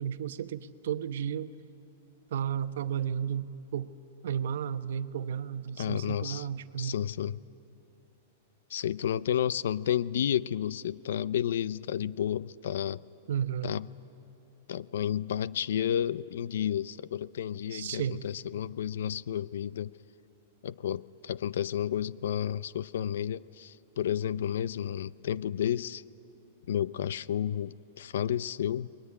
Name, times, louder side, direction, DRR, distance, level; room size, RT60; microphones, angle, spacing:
voice 1, 0.0-1.5 2.3-3.9 4.2-7.0 13.3-13.7 17.7-18.2, right 9 dB, 70° right, 11 dB, 1.0 m, -33 dB
voice 2, 5.8-6.5 6.8-7.4 8.7-13.0 13.6-13.9 14.7-19.9 20.6-26.0 26.7-28.9, left 10 dB, 75° left, 19 dB, 0.6 m, -31 dB
28.0 x 21.5 x 9.7 m, 3.0 s
supercardioid pair, 170°, 0 cm